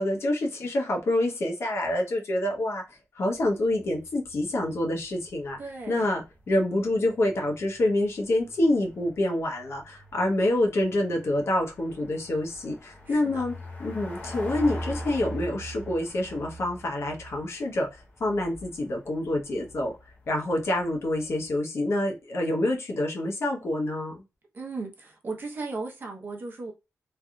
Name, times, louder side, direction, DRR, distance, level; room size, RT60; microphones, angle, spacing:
voice 1, 0.0-5.6 5.9-13.5 13.8-19.9 20.3-24.2, left 1 dB, 55° left, 0.9 m, -27 dB
sound 1, 3.4-21.6, equal, 25° left, 0.7 m, -43 dB
voice 2, 5.6-6.1 13.1-13.4 24.5-26.7, right 3 dB, 40° right, 0.8 m, -36 dB
3.3 x 2.7 x 2.3 m
wide cardioid pair, 165°, 5 cm